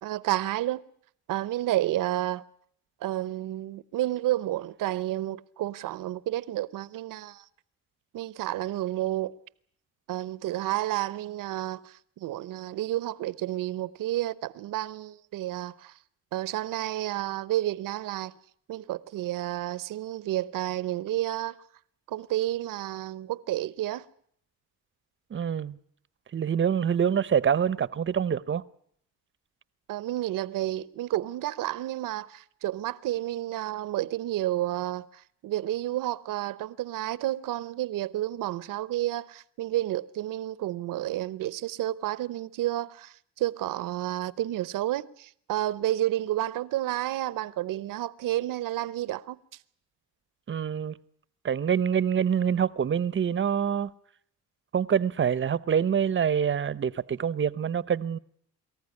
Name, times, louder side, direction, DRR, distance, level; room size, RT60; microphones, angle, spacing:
voice 1, 0.0-0.8 1.3-2.4 3.0-7.5 8.1-9.3 10.1-15.9 16.3-18.3 18.7-21.6 22.1-24.1 29.9-49.4, right 14 dB, 70° right, 0.8 m, -30 dB
voice 2, 25.3-25.8 26.3-28.6 50.5-50.9 51.4-53.9 54.7-58.2, right 8 dB, 35° right, 0.8 m, -26 dB
23.5 x 14.5 x 9.7 m
cardioid pair, 85°, 33 cm